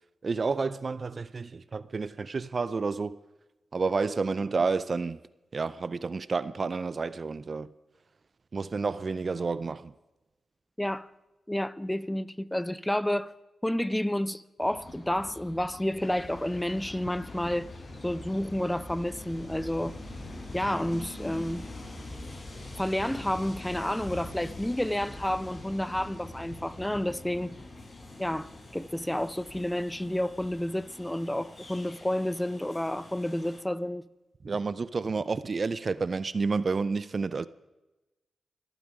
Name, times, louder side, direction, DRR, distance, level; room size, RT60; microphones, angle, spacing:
voice 1, 0.2-3.2 3.7-5.2 5.5-7.7 8.5-9.9 34.4-37.5, right 4 dB, 50° right, 0.5 m, -30 dB
voice 2, 10.8-11.1 11.5-13.3 13.6-17.7 18.0-20.0 20.5-21.7 22.8-27.6 28.2-34.1, left 1 dB, 10° left, 0.7 m, -30 dB
Train, 14.6-33.6, left 2 dB, 40° left, 4.5 m, -44 dB
sound 1, 16.0-22.1, left 4 dB, 55° left, 1.6 m, -53 dB
25.0 x 9.1 x 4.9 m
supercardioid pair, 50°, 0 cm